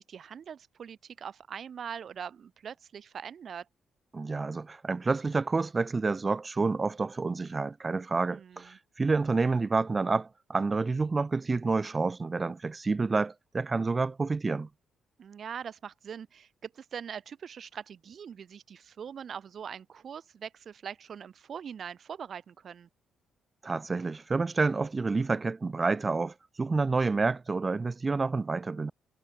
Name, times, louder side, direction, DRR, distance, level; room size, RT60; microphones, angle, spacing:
voice 1, 0.0-3.7 8.3-8.8 15.2-22.9, right 7 dB, 55° right, 1.4 m, -42 dB
voice 2, 4.1-14.7 23.6-28.9, right 3 dB, 25° right, 0.4 m, -29 dB
cardioid pair, 90°, 0 cm